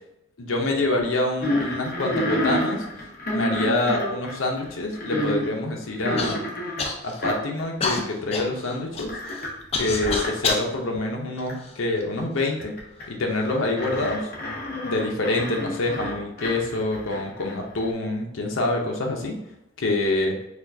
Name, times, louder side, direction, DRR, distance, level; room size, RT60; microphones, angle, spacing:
voice 1, 0.4-2.8 3.3-6.5 7.0-9.1 9.7-12.8 13.1-14.3 14.8-19.4 19.8-20.4, left 2 dB, 80° left, 1 dB, 0.7 m, -26 dB
sound 1, 1.4-5.5 6.0-6.9 7.2-7.6 7.9-8.0 9.1-9.6 10.0-10.3 10.9-11.0 11.5-11.6 12.6-13.0 13.3-17.8, left 1 dB, 45° left, 0.8 m, -29 dB
Human voice / Cough, 6.2-6.4 6.8-7.3 7.8-10.7 11.4-12.2 13.0-13.1 13.8-14.1, left 3 dB, 30° left, 0.4 m, -29 dB
4.2 x 2.3 x 2.7 m, 0.84 s
head